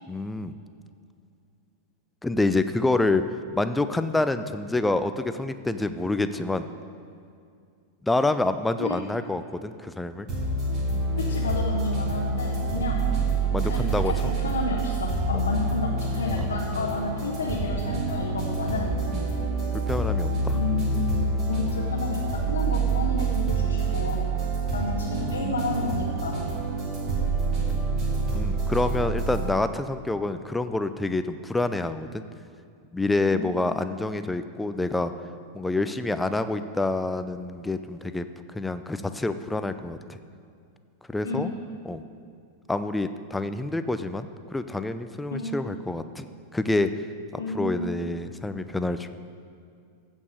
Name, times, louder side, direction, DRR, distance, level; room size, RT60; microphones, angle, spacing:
voice 1, 0.1-0.6 2.2-3.2 3.5-6.6 8.0-10.3 12.8-12.9 13.5-14.1 16.4-16.5 19.1-19.2 19.9-20.6 24.4-24.5 28.3-32.2 32.9-35.1 35.5-38.3 38.5-40.2 41.1-41.5 41.9-42.0 42.7-46.3 46.5-46.9 47.5-49.1, left 2 dB, 5° left, 10 dB, 0.5 m, -27 dB
sound 1, 10.3-29.5, right 3 dB, 35° right, 3.2 m, -27 dB
voice 2, 11.3-13.0 13.6-18.9 20.5-24.2 24.7-26.3 33.3-33.5 41.2-41.5 45.3-45.5 47.4-47.8, left 3 dB, 70° left, -2 dB, 1.1 m, -31 dB
15.0 x 5.4 x 6.4 m, 2.4 s
figure-of-eight pair, 90°, 0 cm